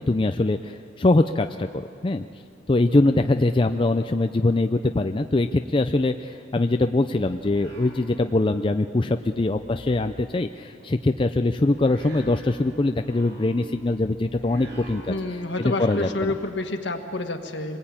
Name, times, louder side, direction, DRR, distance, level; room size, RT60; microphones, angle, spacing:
voice 1, 0.0-2.2 2.7-15.2 15.6-16.3, left 2 dB, 30° left, 7 dB, 0.5 m, -23 dB
sound 1, 7.1-8.6 8.9-16.4, right 1 dB, 60° right, 4.8 m, -44 dB
voice 2, 15.1-17.8, left 2 dB, 70° left, 5 dB, 1.6 m, -28 dB
24.5 x 20.0 x 8.8 m, 2.7 s
head